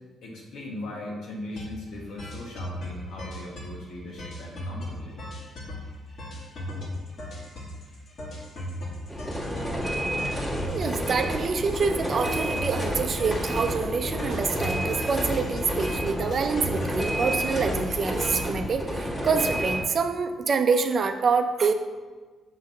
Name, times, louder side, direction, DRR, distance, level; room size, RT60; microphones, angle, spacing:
voice 1, 0.2-5.1, left 1 dB, 80° left, -2 dB, 1.7 m, -38 dB
sound 1, 1.6-1.8 2.1-3.8 4.1-18.4, left 1 dB, 60° left, 2.0 m, -38 dB
sound 2, 9.1-19.8, equal, 15° left, 1.6 m, -30 dB
voice 2, 10.7-21.7, right 5 dB, 50° right, 7 dB, 0.6 m, -26 dB
6.5 x 3.7 x 6.1 m, 1.4 s
cardioid pair, 90°, 0 cm